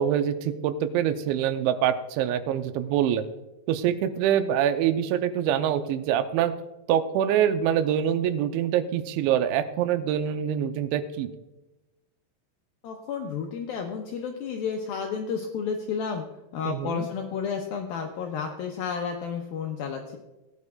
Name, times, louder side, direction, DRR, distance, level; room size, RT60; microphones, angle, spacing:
voice 1, 0.0-3.2 3.7-6.5 6.9-11.3 16.7-17.1, right 9 dB, 90° right, 10 dB, 2.9 m, -25 dB
voice 2, 12.8-16.2 16.5-20.2, left 6 dB, 85° left, 2 dB, 2.1 m, -31 dB
18.0 x 9.5 x 2.3 m, 1.0 s
omnidirectional pair, 5.2 m